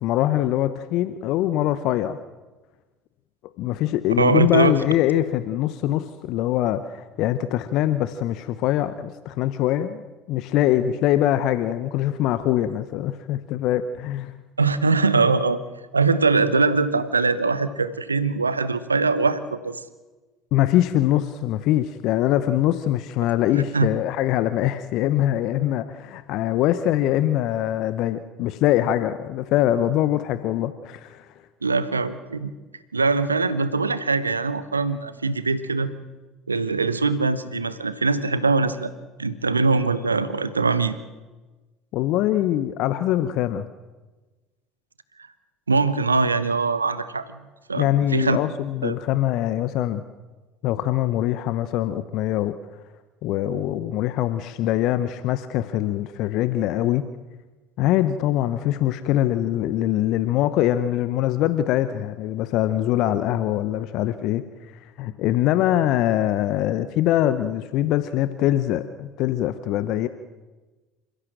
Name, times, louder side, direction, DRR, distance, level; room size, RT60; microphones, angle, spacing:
voice 1, 0.0-2.2 3.6-14.3 20.5-31.3 41.9-43.7 47.8-50.0 50.6-52.6 53.2-57.0 57.8-64.4 65.0-70.1, left 13 dB, 55° left, 12 dB, 0.9 m, -23 dB
voice 2, 4.2-4.7 14.6-15.6 15.9-19.8 23.7-23.9 31.6-32.5 32.9-35.9 36.5-38.9 39.2-41.0 45.7-47.2 47.7-48.4 48.8-48.9, right 4 dB, 85° right, 14 dB, 1.0 m, -22 dB
28.0 x 15.0 x 7.6 m, 1.2 s
figure-of-eight pair, 65°, 0 cm